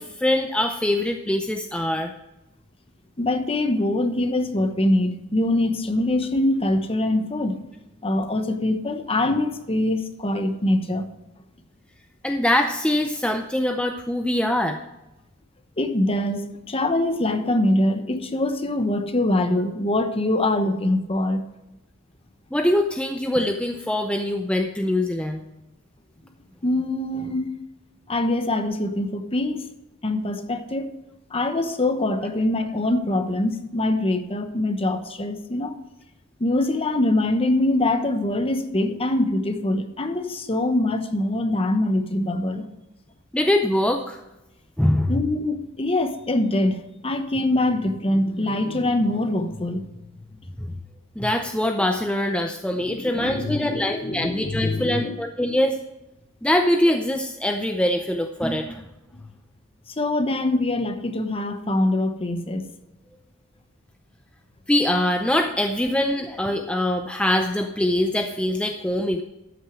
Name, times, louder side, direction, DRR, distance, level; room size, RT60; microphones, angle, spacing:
voice 1, 0.0-2.1 12.2-14.8 22.5-25.4 43.3-44.2 44.8-45.1 51.2-55.8 56.4-58.8 64.7-69.2, left 1 dB, 5° left, 5 dB, 0.5 m, -23 dB
voice 2, 3.2-7.6 8.0-11.1 15.8-21.4 26.6-27.5 28.1-29.7 30.0-30.9 31.3-35.7 36.4-42.7 45.1-49.8 52.7-55.2 55.4-55.6 60.0-62.6, left 1 dB, 30° left, 8 dB, 1.0 m, -23 dB
13.0 x 6.4 x 6.1 m, 0.98 s
head